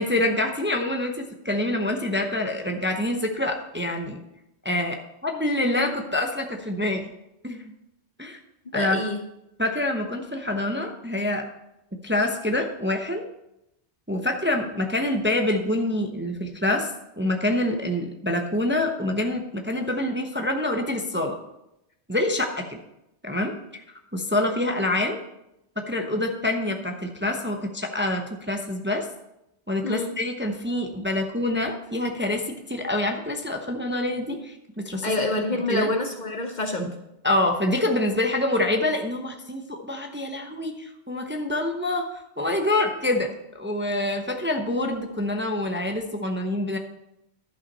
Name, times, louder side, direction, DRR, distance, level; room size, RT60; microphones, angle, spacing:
voice 1, 0.0-4.2 4.6-7.0 7.4-7.6 8.2-8.4 8.7-9.0 9.6-11.4 12.0-13.2 14.1-21.4 22.1-22.8 23.2-23.5 24.1-25.2 25.9-29.1 29.7-35.1 35.7-35.9 36.8-36.9 37.2-43.3 43.6-46.8, left 1 dB, 10° right, 3 dB, 0.7 m, -26 dB
voice 2, 8.7-9.2 29.8-30.1 35.0-36.9, left 2 dB, 45° left, 4 dB, 0.8 m, -27 dB
11.5 x 5.8 x 5.3 m, 0.86 s
omnidirectional pair, 1.2 m